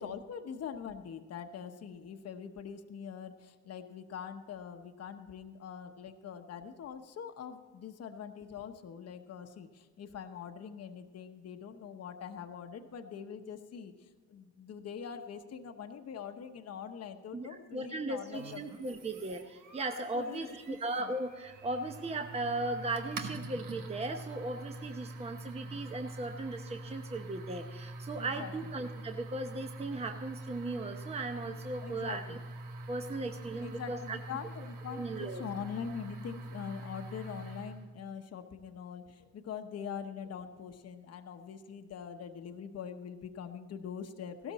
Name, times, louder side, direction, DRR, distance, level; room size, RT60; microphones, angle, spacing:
voice 1, 0.0-19.0 20.1-21.1 28.1-28.7 31.8-32.4 33.6-44.5, left 7 dB, 55° left, 6 dB, 1.0 m, -43 dB
voice 2, 17.3-32.4 32.9-34.2 34.9-35.4, right 2 dB, 20° right, 5 dB, 0.9 m, -37 dB
sound 1, 18.3-37.9, right 2 dB, 80° right, 1.4 m, -45 dB
16.0 x 13.0 x 4.2 m, 1.5 s
cardioid pair, 90°, 30 cm